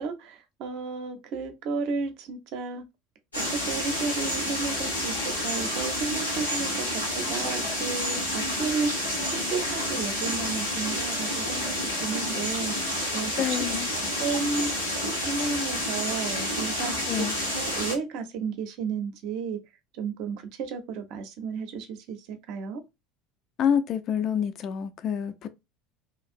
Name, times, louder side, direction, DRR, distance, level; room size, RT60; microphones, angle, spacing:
voice 1, 0.0-2.8 3.5-5.1 5.4-9.1 9.4-11.8 12.0-13.7 14.2-14.7 15.1-17.0 17.5-19.6 20.0-22.8, right 5 dB, 55° right, 0.6 m, -33 dB
sound 1, 3.3-17.9, left 1 dB, 90° left, 1.0 m, -29 dB
voice 2, 13.4-13.9 17.1-17.3 23.6-25.5, left 8 dB, 45° left, 0.4 m, -27 dB
2.9 x 2.4 x 2.5 m
figure-of-eight pair, 65°, 0 cm